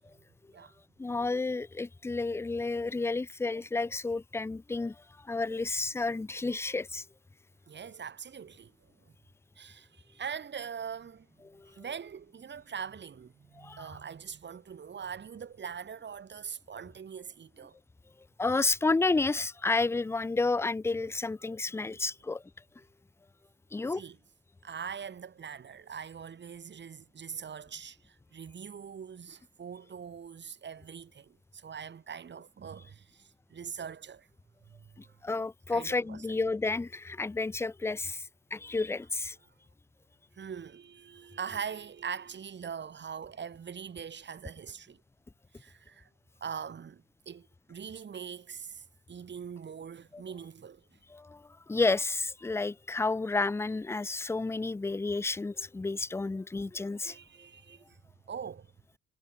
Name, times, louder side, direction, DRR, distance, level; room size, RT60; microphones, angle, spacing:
voice 1, 1.0-5.0 5.2-7.0 11.5-11.7 13.6-13.9 18.4-22.4 23.7-24.0 35.0-39.4 50.1-50.2 51.1-57.2, left 3 dB, 10° left, 0.4 m, -31 dB
voice 2, 7.7-8.7 9.6-17.8 23.9-24.2 24.6-34.3 34.6-35.1 35.7-36.4 40.4-45.0 45.5-46.1 46.4-50.8 57.0-58.0 58.3-58.7, right 7 dB, 35° right, 1.2 m, -42 dB
cardioid pair, 90°, 30 cm